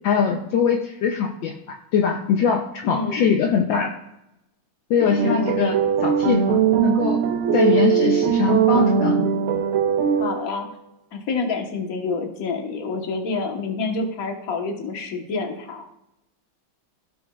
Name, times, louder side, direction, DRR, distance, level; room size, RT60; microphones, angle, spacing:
voice 1, 0.0-3.9 4.9-5.8 6.0-7.2 7.5-9.3, left 6 dB, 70° left, 2 dB, 1.4 m, -22 dB
voice 2, 2.8-3.3 5.0-5.4 5.7-5.8 10.2-10.7 11.1-15.8, left 4 dB, 50° left, 3 dB, 1.5 m, -28 dB
sound 1, 5.2-10.6, right 8 dB, 85° right, 1.6 m, -20 dB
16.5 x 6.1 x 2.4 m, 0.88 s
omnidirectional pair, 2.3 m